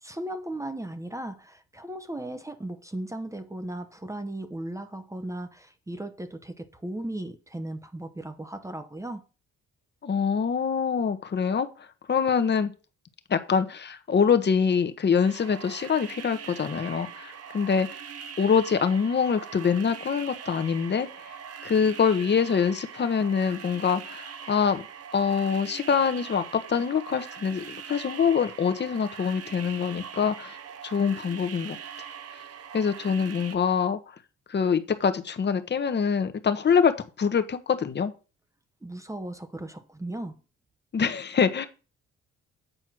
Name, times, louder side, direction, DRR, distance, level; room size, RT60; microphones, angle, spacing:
voice 1, 0.0-9.2 38.8-40.4, right 1 dB, 10° right, 0.8 m, -36 dB
voice 2, 10.0-11.7 12.1-12.7 13.3-18.0 18.4-21.1 21.6-24.8 25.1-30.6 30.8-31.8 32.7-34.0 34.5-36.9 37.2-38.1 40.9-41.7, left 6 dB, 35° left, 1.0 m, -25 dB
sound 1, 15.2-33.6, right 8 dB, 55° right, 0.9 m, -42 dB
7.9 x 4.4 x 6.0 m
cardioid pair, 90°, 30 cm